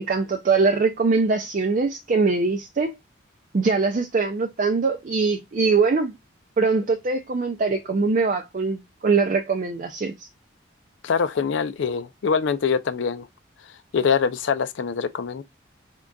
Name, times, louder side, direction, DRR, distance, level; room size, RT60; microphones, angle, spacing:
voice 1, 0.0-3.0 3.5-6.2 6.6-10.3, right 4 dB, 40° right, 0.4 m, -22 dB
voice 2, 11.0-13.3 13.6-15.4, left 6 dB, 70° left, 0.4 m, -24 dB
3.8 x 3.7 x 2.2 m
head